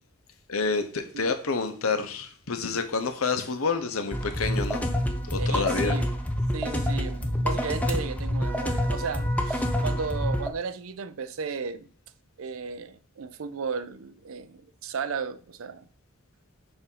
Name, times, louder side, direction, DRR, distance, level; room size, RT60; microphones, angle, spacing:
voice 1, 0.5-4.8 5.2-6.0, left 4 dB, 85° left, 0.9 m, -28 dB
sound 1, 4.1-10.5, equal, 5° left, 0.6 m, -27 dB
voice 2, 5.4-6.1 6.5-11.9 12.4-15.9, right 5 dB, 75° right, 0.5 m, -35 dB
6.9 x 2.7 x 5.5 m
head